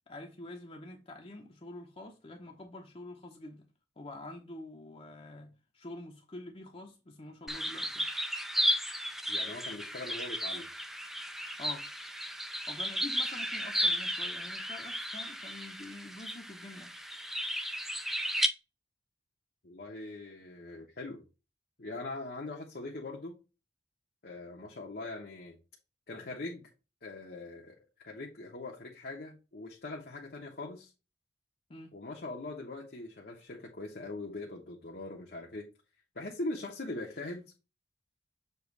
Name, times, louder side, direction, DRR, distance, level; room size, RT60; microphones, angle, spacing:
voice 1, 0.1-3.7 4.0-8.1 11.6-11.9 12.7-16.9 31.7-31.9, left 2 dB, 35° left, 0.9 m, -46 dB
sound 1, 7.5-18.5, equal, ahead, 0.5 m, -34 dB
voice 2, 9.3-10.7 19.6-21.2 21.8-23.4 24.2-25.6 26.1-26.7 27.0-27.7 28.0-30.9 31.9-35.7 36.1-37.4, left 2 dB, 60° left, 1.1 m, -41 dB
7.0 x 3.1 x 4.6 m
head